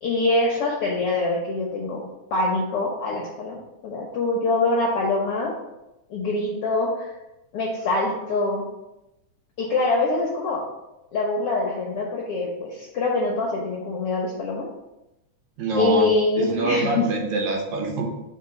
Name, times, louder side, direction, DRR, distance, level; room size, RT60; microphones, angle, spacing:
voice 1, 0.0-2.0 2.3-3.6 3.8-5.5 6.1-7.1 7.5-8.6 9.6-10.6 11.1-14.7 15.8-17.1, left 3 dB, 70° left, -1 dB, 1.3 m, -24 dB
voice 2, 15.6-16.1 16.4-18.1, right 3 dB, 75° right, 1 dB, 2.3 m, -25 dB
4.3 x 4.3 x 5.7 m, 0.93 s
omnidirectional pair, 3.6 m